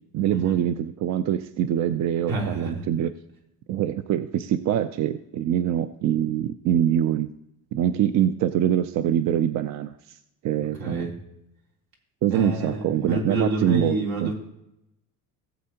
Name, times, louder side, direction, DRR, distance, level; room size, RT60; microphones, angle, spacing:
voice 1, 0.1-3.1 3.7-7.3 7.7-10.2 10.4-11.1 12.2-14.3, right 10 dB, 50° right, 12 dB, 0.5 m, -24 dB
voice 2, 2.3-2.9 10.8-11.1 12.3-14.3, right 2 dB, 75° right, -1 dB, 3.4 m, -28 dB
17.5 x 7.7 x 2.8 m, 0.84 s
cardioid pair, 135°, 38 cm